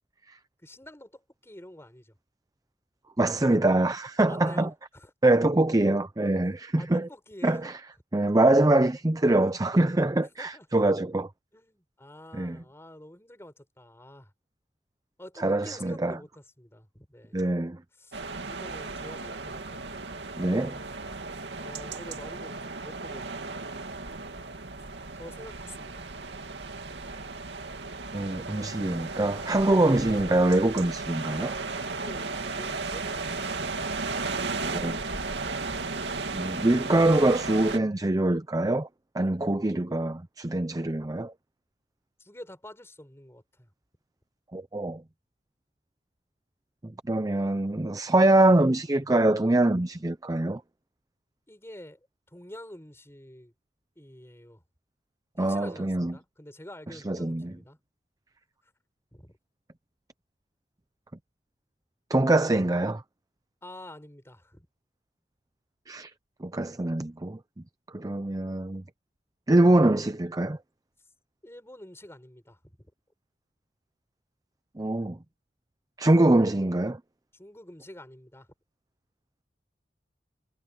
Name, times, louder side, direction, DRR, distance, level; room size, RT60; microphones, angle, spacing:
voice 1, 0.6-2.1 4.2-5.1 6.8-7.7 10.2-10.8 11.5-14.3 15.2-17.5 18.0-18.2 18.5-20.0 21.6-23.5 25.1-26.1 32.0-33.8 42.2-43.7 51.5-52.0 52.3-53.5 54.0-54.6 55.4-57.8 58.6-58.7 59.1-59.3 63.6-64.7 71.4-72.8 77.3-78.5, left 1 dB, 15° left, 7.2 m, -47 dB
voice 2, 3.2-4.7 5.2-7.1 7.4-7.8 8.1-11.3 12.3-12.6 15.4-16.2 17.3-17.8 20.4-20.8 28.1-31.6 34.6-35.0 36.3-38.9 39.1-41.3 44.5-45.0 47.0-50.6 55.4-56.1 56.9-57.5 62.1-63.0 65.9-66.1 66.4-67.4 67.9-68.8 69.5-70.6 74.8-75.2 76.0-77.0, right 2 dB, 20° right, 0.6 m, -24 dB
sound 1, 18.1-37.8, right 3 dB, 75° right, 2.6 m, -35 dB
head